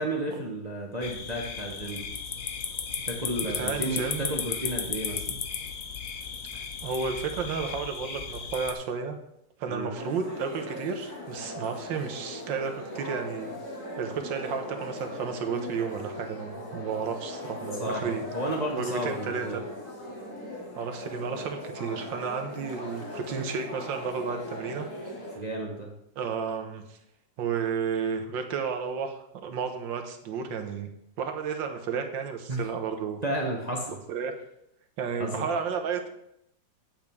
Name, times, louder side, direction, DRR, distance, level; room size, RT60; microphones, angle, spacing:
voice 1, 0.0-2.0 3.1-5.4 9.7-9.9 17.8-19.6 25.3-25.9 32.5-32.6 33.2-34.0 35.2-35.5, right 1 dB, 30° right, 0 dB, 0.9 m, -32 dB
sound 1, 1.0-8.7, left 7 dB, 55° left, 1.0 m, -35 dB
voice 2, 3.4-4.3 6.5-9.2 9.6-13.6 14.0-18.2 18.7-19.6 20.8-24.9 26.2-27.0 27.4-30.9 31.2-33.2 34.1-34.3 35.0-36.1, right 6 dB, 80° right, 5 dB, 1.7 m, -32 dB
sound 2, 9.9-25.4, left 1 dB, 40° left, 2.4 m, -39 dB
8.9 x 8.0 x 3.5 m, 0.78 s
omnidirectional pair, 2.0 m